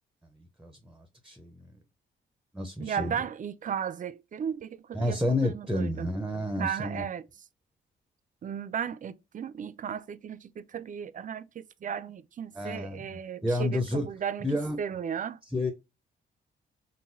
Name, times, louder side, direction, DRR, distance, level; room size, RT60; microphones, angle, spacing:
voice 1, 0.3-1.7 2.5-3.1 4.9-7.0 12.5-14.1 14.4-14.8 15.5-15.7, left 1 dB, 5° right, 0.6 m, -30 dB
voice 2, 2.8-6.1 6.4-7.2 8.4-14.5 14.8-15.4, right 8 dB, 40° right, 0.4 m, -35 dB
3.8 x 2.2 x 2.5 m
cardioid pair, 70°, 21 cm